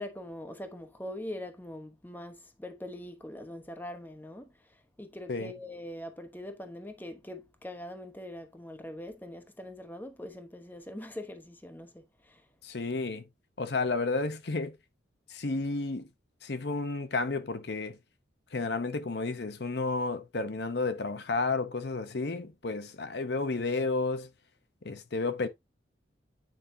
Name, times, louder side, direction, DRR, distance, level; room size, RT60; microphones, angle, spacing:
voice 1, 0.0-12.5, left 1 dB, 10° left, 0.9 m, -43 dB
voice 2, 12.6-13.2 13.6-14.7 15.3-16.1 16.4-18.0 18.5-24.3 24.8-25.5, left 3 dB, 60° left, 0.8 m, -31 dB
9.2 x 5.2 x 2.7 m
head